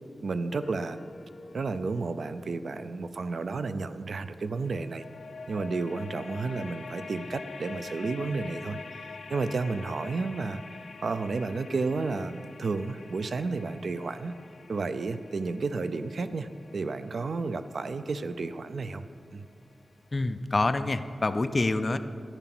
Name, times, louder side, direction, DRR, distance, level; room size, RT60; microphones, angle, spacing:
voice 1, 0.2-1.0 1.5-5.0 5.5-8.8 9.3-10.6 11.0-14.3 14.7-19.1 19.3-19.4, right 3 dB, 65° right, 11 dB, 0.5 m, -32 dB
sound 1, 0.6-3.9 4.6-19.5, left 4 dB, 80° left, 0.6 m, -46 dB
voice 2, 20.1-22.0, left 2 dB, 30° left, 10 dB, 0.5 m, -26 dB
13.0 x 10.0 x 6.0 m, 2.4 s
wide cardioid pair, 145°, 0 cm